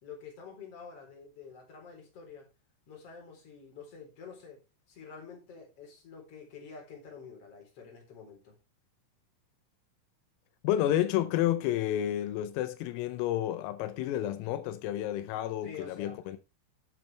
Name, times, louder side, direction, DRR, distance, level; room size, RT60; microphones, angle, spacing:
voice 1, 0.0-2.5 2.9-4.6 4.9-8.5 15.6-16.4, left 6 dB, 30° left, 4.4 m, -48 dB
voice 2, 10.6-16.4, left 12 dB, 90° left, 3.5 m, -30 dB
10.5 x 9.3 x 3.4 m
omnidirectional pair, 6.0 m